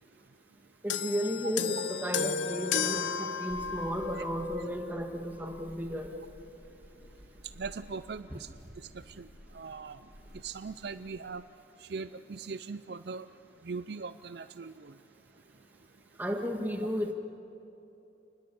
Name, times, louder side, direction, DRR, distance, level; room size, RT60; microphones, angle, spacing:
voice 1, 0.8-6.2 16.2-17.1, equal, 10° right, 2 dB, 2.1 m, -33 dB
sound 1, 0.9-4.5 5.4-5.5, left 7 dB, 85° left, 0.9 m, -33 dB
sound 2, 3.5-11.3, equal, 50° left, 3.5 m, -53 dB
voice 2, 7.6-8.5 8.9-9.3 9.5-10.0 10.3-11.4 11.8-13.3 13.6-14.9, right 4 dB, 60° right, 12 dB, 0.5 m, -40 dB
29.5 x 20.0 x 7.1 m, 2.9 s
head